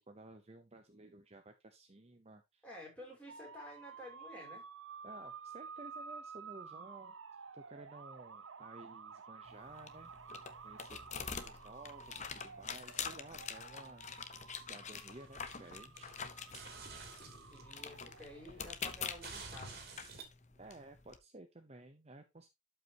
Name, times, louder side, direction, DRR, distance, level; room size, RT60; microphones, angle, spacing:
voice 1, 0.0-2.6 5.0-7.1 7.5-10.1 10.6-11.0 11.3-16.1 20.5-22.5, right 2 dB, 30° right, 0.8 m, -55 dB
voice 2, 2.6-4.6 17.3-19.9, left 1 dB, 5° left, 5.4 m, -52 dB
sound 1, 3.3-18.7, right 5 dB, 60° right, 0.7 m, -52 dB
sound 2, 9.5-21.2, left 6 dB, 35° left, 0.9 m, -46 dB
sound 3, 15.0-17.8 18.2-20.2, right 4 dB, 45° right, 2.7 m, -51 dB
12.5 x 5.6 x 2.9 m
head